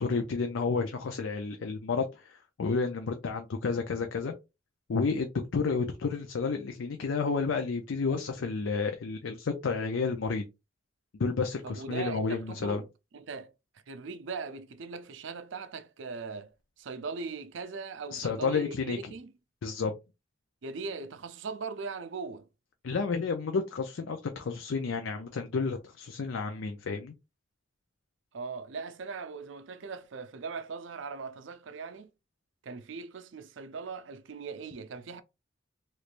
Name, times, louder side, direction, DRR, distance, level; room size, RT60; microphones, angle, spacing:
voice 1, 0.0-4.3 4.9-10.4 11.2-12.8 18.1-19.1 19.6-19.9 22.8-27.1, left 4 dB, 80° left, 0.5 m, -31 dB
voice 2, 11.6-12.9 13.1-13.5 13.9-16.5 16.8-19.3 20.6-22.5 28.3-32.1 32.6-35.2, right 4 dB, 75° right, 0.5 m, -40 dB
3.2 x 3.1 x 2.5 m
head